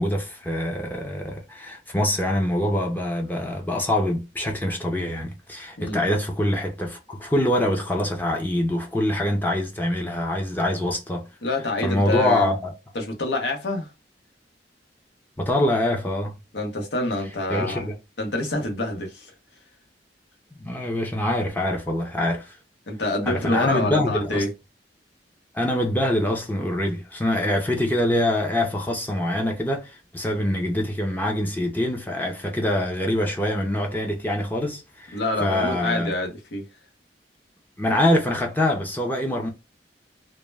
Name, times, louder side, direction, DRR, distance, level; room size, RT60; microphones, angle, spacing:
voice 1, 0.0-11.3 11.8-12.6 15.4-16.4 17.5-18.0 20.5-22.6 23.3-24.4 25.5-36.1 37.8-39.5, left 1 dB, 10° left, 0.4 m, -24 dB
voice 2, 11.4-12.5 12.9-13.9 16.5-17.9 18.2-19.3 22.9-24.5 35.1-36.6, left 2 dB, 90° left, 0.8 m, -26 dB
2.1 x 2.1 x 3.2 m
head